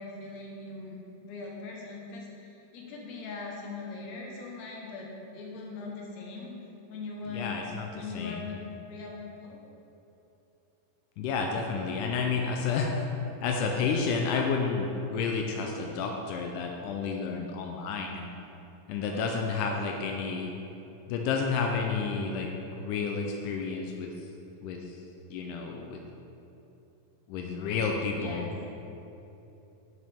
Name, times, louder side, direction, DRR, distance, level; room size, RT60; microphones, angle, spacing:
voice 1, 0.0-6.5 6.9-7.6 7.9-8.6 8.9-9.6 19.1-19.7 28.1-28.5, left 4 dB, 65° left, -2 dB, 1.9 m, -41 dB
voice 2, 7.3-8.5 11.2-13.1 13.4-18.3 18.9-20.5 21.1-22.5 22.8-24.3 24.6-25.0 25.3-26.0 27.3-28.5, left 5 dB, 85° left, 1 dB, 1.8 m, -31 dB
10.5 x 6.6 x 3.5 m, 2.9 s
omnidirectional pair, 4.3 m